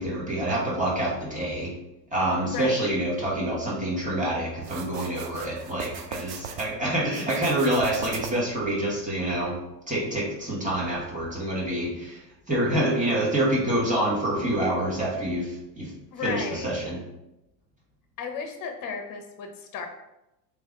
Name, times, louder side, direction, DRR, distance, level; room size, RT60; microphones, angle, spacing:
voice 1, 0.0-1.7 2.1-9.5 9.9-12.2 12.5-15.9 16.2-17.0, right 1 dB, 15° right, -5 dB, 1.4 m, -27 dB
voice 2, 2.5-2.9 16.1-16.7 18.2-19.9, left 5 dB, 40° left, 3 dB, 0.9 m, -34 dB
sound 1, 4.6-6.7 7.1-8.6, right 7 dB, 55° right, 0.7 m, -38 dB
3.4 x 3.3 x 3.6 m, 0.92 s
hypercardioid pair, 90°, 49 cm